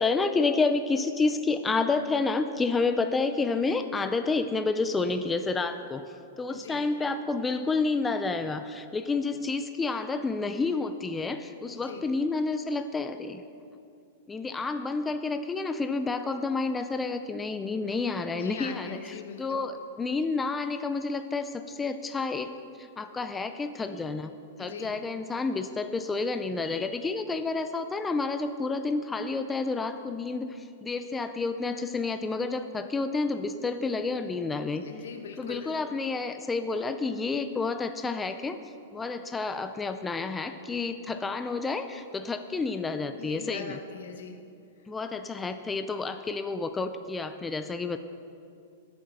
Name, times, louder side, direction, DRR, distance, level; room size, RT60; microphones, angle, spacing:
voice 1, 0.0-6.1 6.4-13.4 14.3-22.5 22.8-24.3 24.6-34.8 35.4-38.6 38.9-43.8 44.9-48.0, left 3 dB, 10° left, 8 dB, 0.4 m, -30 dB
voice 2, 6.5-6.8 11.7-12.0 18.3-19.6 24.6-25.0 34.7-35.8 43.2-44.4, left 6 dB, 85° left, 5 dB, 1.3 m, -41 dB
20.0 x 7.8 x 4.1 m, 2.5 s
supercardioid pair, 155°, 0 cm